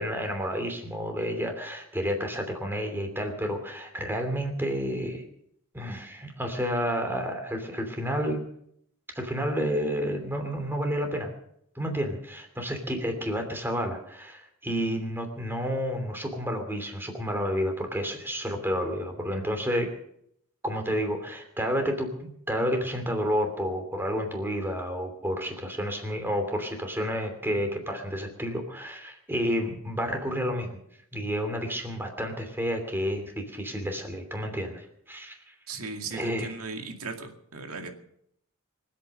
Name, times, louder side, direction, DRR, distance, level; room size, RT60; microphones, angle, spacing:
voice 1, 0.0-5.2 5.7-8.4 9.1-11.3 11.7-19.9 20.6-30.7 31.1-35.4 36.1-36.5, equal, 10° right, 5 dB, 2.9 m, -30 dB
voice 2, 35.7-37.9, right 4 dB, 85° right, 4 dB, 2.2 m, -37 dB
24.0 x 8.7 x 6.5 m, 0.72 s
head